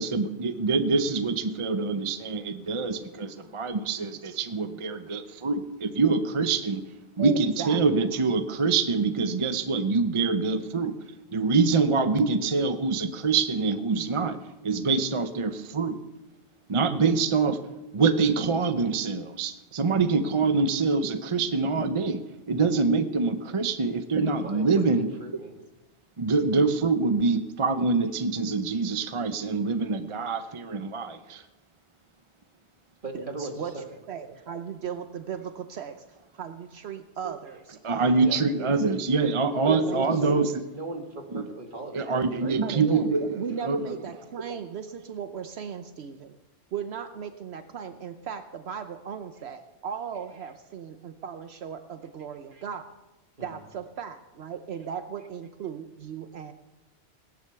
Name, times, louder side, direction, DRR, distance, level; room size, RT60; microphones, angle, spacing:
voice 1, 0.0-6.8 7.2-10.9 11.3-14.4 14.6-16.0 16.7-17.6 17.9-22.2 22.5-25.1 26.2-31.4 37.2-37.3 37.8-40.5 41.3-41.4 41.9-43.8 44.5-44.6, right 4 dB, 35° right, 9 dB, 0.7 m, -25 dB
voice 2, 7.2-7.8 33.1-36.0 36.3-38.3 38.6-38.9 39.7-40.1 42.6-46.4 46.7-52.8 53.4-56.5, right 7 dB, 75° right, 8 dB, 1.0 m, -37 dB
voice 3, 24.3-24.8 25.2-25.5 33.0-33.9 38.2-38.4 39.6-40.4 40.7-42.1 42.4-43.1 52.5-52.6 53.4-53.5, right 2 dB, 50° right, 3 dB, 2.1 m, -38 dB
18.0 x 10.5 x 6.8 m, 1.0 s
omnidirectional pair, 1.1 m